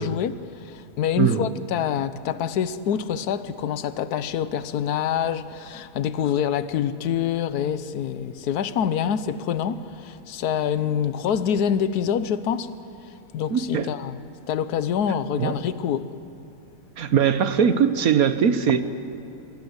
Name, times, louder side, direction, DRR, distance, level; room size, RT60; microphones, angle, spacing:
voice 1, 0.0-12.7 13.3-14.2 14.5-16.1, left 8 dB, 70° left, 1.4 m, -26 dB
voice 2, 1.2-1.5 13.5-13.9 15.4-15.5 17.0-18.8, right 7 dB, 60° right, 1.5 m, -21 dB
26.0 x 23.0 x 8.1 m
omnidirectional pair, 1.8 m